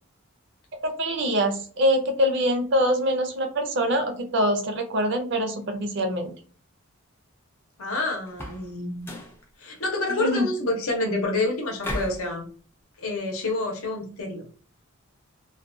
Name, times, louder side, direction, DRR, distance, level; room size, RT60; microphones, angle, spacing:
voice 1, 0.8-6.3 10.2-10.5, equal, 50° right, 5 dB, 0.5 m, -24 dB
voice 2, 7.8-9.1 9.6-12.5 13.0-14.5, left 2 dB, 75° left, 1 dB, 0.7 m, -28 dB
sound 1, 8.3-8.7 9.0-9.4 11.8-12.3, left 1 dB, 10° left, 0.4 m, -34 dB
2.3 x 2.2 x 2.5 m, 0.40 s
head